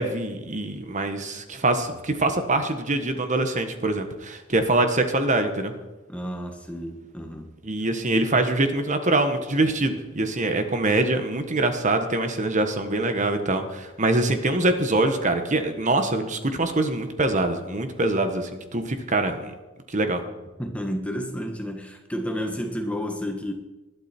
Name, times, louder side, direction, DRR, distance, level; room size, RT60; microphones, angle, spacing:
voice 1, 0.0-5.7 7.6-19.5 19.9-20.2, right 2 dB, 35° right, 7 dB, 1.4 m, -24 dB
voice 2, 6.1-7.5 20.6-23.5, equal, 5° left, 4 dB, 1.5 m, -31 dB
20.5 x 12.0 x 4.5 m, 1.1 s
head